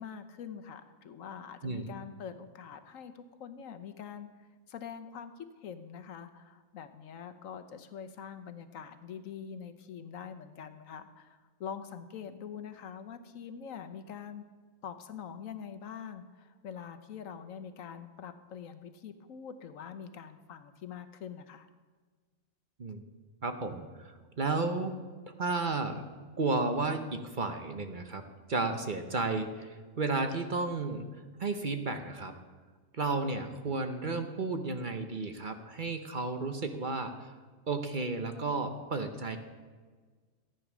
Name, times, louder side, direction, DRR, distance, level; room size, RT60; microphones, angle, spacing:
voice 1, 0.0-4.3 4.7-14.5 14.8-21.7, left 7 dB, 80° left, 10 dB, 1.2 m, -44 dB
voice 2, 23.4-24.9 25.4-26.0 26.4-28.2 28.5-31.0 31.4-32.3 32.9-37.3 37.7-39.4, right 3 dB, 40° right, 7 dB, 0.9 m, -33 dB
14.0 x 9.2 x 6.1 m, 1.4 s
omnidirectional pair, 1.4 m